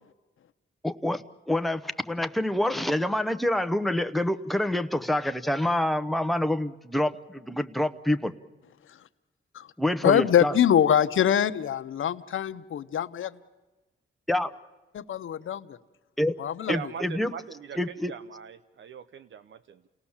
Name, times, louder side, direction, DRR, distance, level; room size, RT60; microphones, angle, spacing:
voice 1, 0.8-8.3 9.8-10.5 14.3-14.5 16.2-16.3 16.7-17.3 17.8-18.1, left 1 dB, ahead, 0.9 m, -27 dB
voice 2, 10.0-13.4 14.9-15.8 16.4-16.9, left 9 dB, 75° left, 0.8 m, -24 dB
voice 3, 16.7-19.8, right 7 dB, 65° right, 0.8 m, -40 dB
29.0 x 18.0 x 7.3 m
cardioid pair, 90°, 21 cm